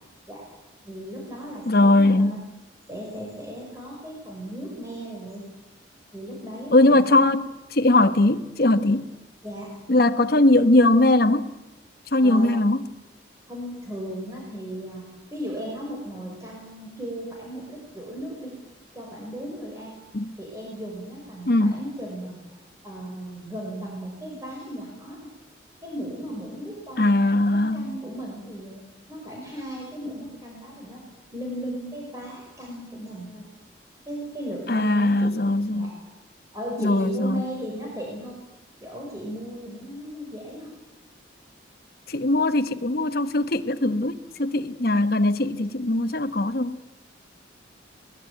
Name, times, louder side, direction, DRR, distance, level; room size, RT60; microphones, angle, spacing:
voice 1, 0.8-2.4 2.9-5.4 6.1-7.1 9.4-9.7 12.2-12.5 13.5-15.0 15.3-18.5 18.9-20.0 20.4-25.3 25.8-27.1 27.7-28.8 29.1-33.5 34.1-35.3 35.7-35.9 36.5-38.3 38.8-40.7, equal, 15° right, 4.9 m, -36 dB
voice 2, 1.7-2.3 6.7-9.1 9.9-11.5 12.1-12.9 20.1-20.3 21.4-21.8 27.0-28.0 34.7-36.0 36.8-37.4 42.1-46.8, left 2 dB, 55° left, 1.1 m, -20 dB
21.5 x 20.0 x 9.2 m
head